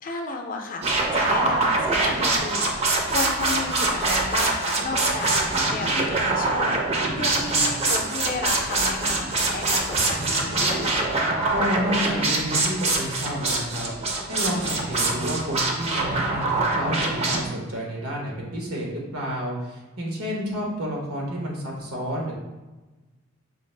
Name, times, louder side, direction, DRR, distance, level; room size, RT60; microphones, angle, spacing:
voice 1, 0.0-11.0 20.3-20.7, left 3 dB, 40° left, 3 dB, 0.5 m, -33 dB
sound 1, 0.8-17.4, right 2 dB, 30° right, 0.5 m, -24 dB
voice 2, 11.5-13.9 14.3-22.3, equal, 85° right, -2 dB, 1.0 m, -30 dB
5.6 x 2.4 x 3.2 m, 1.2 s
head